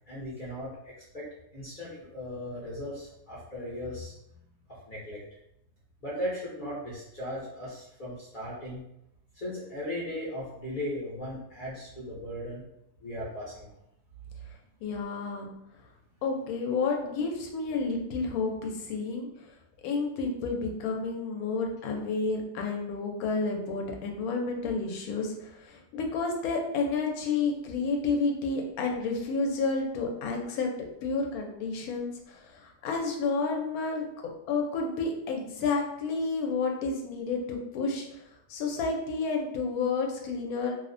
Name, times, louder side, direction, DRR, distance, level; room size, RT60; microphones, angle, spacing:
voice 1, 0.1-1.3 1.5-4.1 4.7-5.2 6.0-8.8 9.3-12.6 13.0-13.8, left 1 dB, 50° left, -7 dB, 0.6 m, -37 dB
voice 2, 14.8-15.5 16.2-19.3 19.8-34.1 34.5-38.2 38.5-40.7, left 4 dB, 75° left, 2 dB, 1.0 m, -30 dB
2.7 x 2.1 x 2.4 m, 0.80 s
omnidirectional pair, 1.6 m